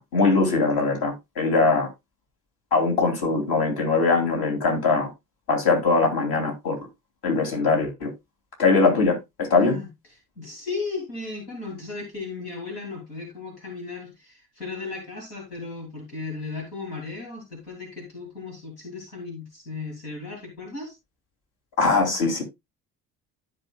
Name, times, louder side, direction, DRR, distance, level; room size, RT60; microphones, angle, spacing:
voice 1, 0.0-1.9 2.7-5.1 5.5-6.8 7.2-8.1 8.6-9.8 21.8-22.4, left 3 dB, 50° left, 3.1 m, -21 dB
voice 2, 10.4-20.9, left 4 dB, 80° left, 2.7 m, -35 dB
12.5 x 6.4 x 2.3 m
figure-of-eight pair, 50°, 46 cm